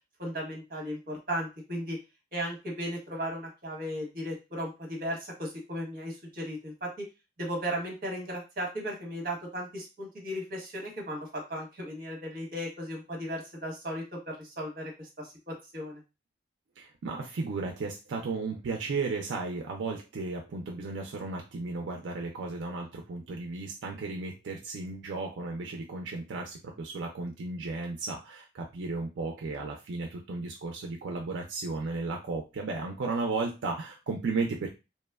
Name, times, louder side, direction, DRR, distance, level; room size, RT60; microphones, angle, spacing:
voice 1, 0.2-2.0 2.3-7.1 7.4-16.0, equal, 50° right, 0 dB, 0.9 m, -36 dB
voice 2, 16.8-34.7, right 3 dB, 80° right, 1 dB, 0.4 m, -34 dB
2.9 x 2.1 x 2.2 m, 0.27 s
head